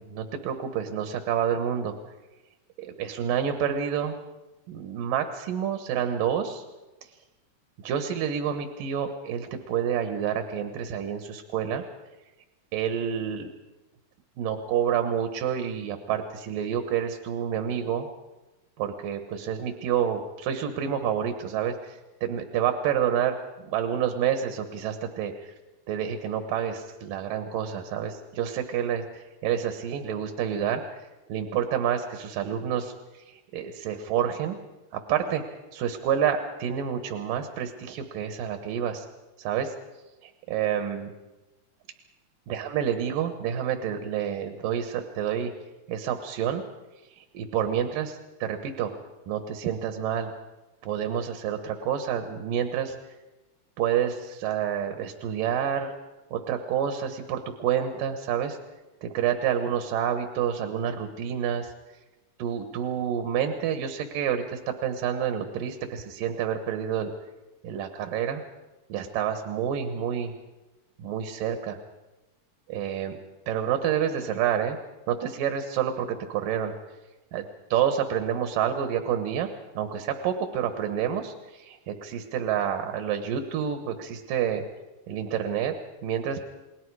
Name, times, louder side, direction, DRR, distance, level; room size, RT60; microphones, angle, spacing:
voice 1, 0.0-1.9 2.8-4.2 4.7-6.6 7.8-11.8 12.7-13.5 14.4-18.1 18.8-25.5 25.9-30.8 31.3-34.6 35.1-35.4 35.7-39.0 39.4-39.7 40.2-41.1 42.5-45.5 45.9-46.6 47.2-48.9 49.3-50.3 50.8-53.0 53.8-55.9 56.3-58.6 59.0-61.7 62.4-67.1 67.6-68.4 68.9-70.3 71.0-71.8 72.7-73.2 73.5-74.8 75.1-76.7 77.3-77.4 77.7-79.5 79.8-84.6 85.1-85.7 86.0-86.4, right 9 dB, 85° right, 7 dB, 2.9 m, -28 dB
29.5 x 21.0 x 4.8 m, 1.1 s
omnidirectional pair, 3.8 m